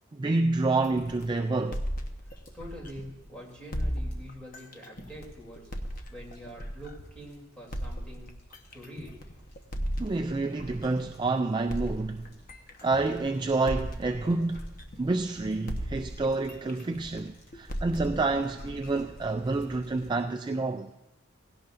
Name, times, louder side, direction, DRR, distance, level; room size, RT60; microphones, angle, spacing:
voice 1, 0.1-1.8 10.0-12.3 12.8-14.7 15.0-20.9, right 3 dB, 20° right, 0.3 m, -28 dB
sound 1, 0.7-20.2, right 1 dB, 75° left, 4.8 m, -57 dB
sound 2, 0.8-3.3 3.7-7.2 7.7-11.3 11.7-15.4 15.7-19.8, equal, 45° left, 1.0 m, -37 dB
voice 2, 2.3-5.7 6.1-8.4 8.7-9.2, equal, 5° left, 3.0 m, -45 dB
17.5 x 17.0 x 2.6 m
head